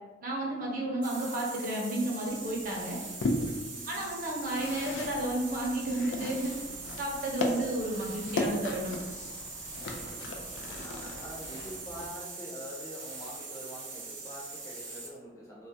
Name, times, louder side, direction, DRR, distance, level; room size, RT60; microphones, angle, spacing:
voice 1, 0.2-3.0 3.9-6.6 7.0-9.0, right 1 dB, 50° right, -2 dB, 0.6 m, -32 dB
sound 1, 1.0-15.2, right 3 dB, 85° right, 0.7 m, -42 dB
sound 2, 2.3-11.3, left 2 dB, 90° left, 0.4 m, -37 dB
voice 2, 3.7-4.1 9.8-10.4 10.8-15.7, equal, 15° left, -4 dB, 0.5 m, -45 dB
sound 3, 4.6-12.1, equal, 55° left, 1.1 m, -52 dB
2.3 x 2.1 x 2.6 m, 1.3 s
head